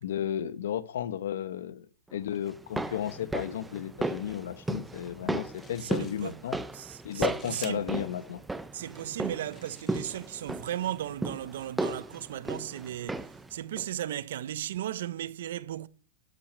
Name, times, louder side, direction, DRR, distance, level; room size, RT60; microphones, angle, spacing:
voice 1, 0.0-1.9 2.1-6.6 7.0-8.4, left 10 dB, 80° left, 0.9 m, -33 dB
sound 1, 2.5-13.5 13.8-13.9, right 2 dB, 5° right, 0.5 m, -35 dB
sound 2, 5.2-5.3 5.5-6.5 6.8-7.7 8.5-8.6 9.2-10.8, left 5 dB, 15° left, 1.3 m, -52 dB
voice 2, 5.8-6.4 6.7-8.0 8.7-15.9, right 12 dB, 70° right, 0.6 m, -36 dB
12.0 x 5.9 x 6.6 m
supercardioid pair, 165°, 0 cm